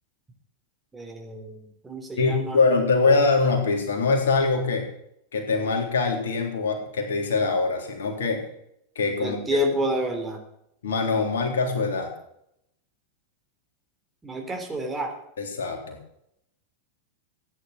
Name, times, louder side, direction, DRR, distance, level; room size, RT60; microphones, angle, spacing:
voice 1, 0.9-2.6 9.2-10.4 14.2-15.1, equal, 10° right, 2 dB, 3.7 m, -29 dB
voice 2, 2.2-4.9 5.3-8.4 9.0-9.6 10.8-12.1 15.4-16.0, left 4 dB, 65° left, 3 dB, 3.7 m, -23 dB
15.5 x 10.0 x 6.9 m, 0.77 s
figure-of-eight pair, 90°, 0 cm